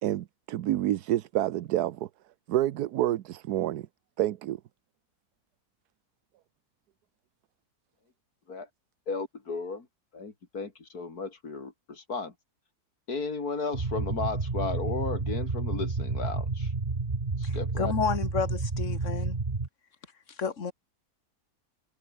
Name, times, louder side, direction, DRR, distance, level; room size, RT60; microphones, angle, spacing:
voice 1, 0.0-2.1 2.5-3.9 4.2-4.6, right 13 dB, 85° right, 1.3 m, -28 dB
voice 2, 9.1-9.9 10.1-12.3 13.1-16.7 17.4-17.9, left 4 dB, 75° left, 3.7 m, -34 dB
sound 1, 13.7-19.7, right 3 dB, 30° right, 1.8 m, -30 dB
voice 3, 17.4-19.4 20.4-20.7, left 6 dB, 50° left, 2.0 m, -31 dB
omnidirectional pair, 1.6 m